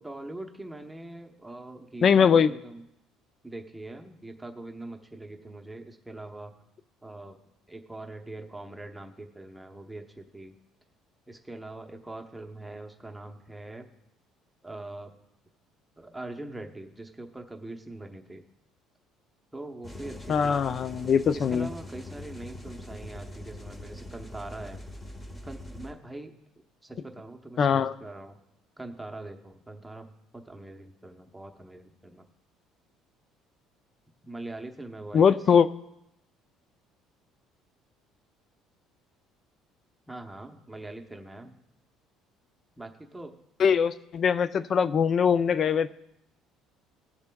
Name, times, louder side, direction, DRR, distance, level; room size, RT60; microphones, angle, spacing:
voice 1, 0.0-2.8 3.4-6.5 7.0-7.4 7.7-10.5 11.3-13.9 14.6-15.1 16.0-18.4 19.5-20.6 21.3-24.8 25.4-26.3 26.8-28.4 28.8-32.3 34.2-35.4 40.1-41.5 42.8-43.3, right 2 dB, 5° right, 3 dB, 0.9 m, -42 dB
voice 2, 2.0-2.5 20.3-21.7 27.6-27.9 35.1-35.7 43.6-45.9, left 7 dB, 40° left, 14 dB, 0.4 m, -22 dB
sound 1, 19.8-25.9, left 1 dB, 20° left, 1.0 m, -43 dB
20.0 x 7.0 x 2.3 m, 0.85 s
cardioid pair, 140°, 0 cm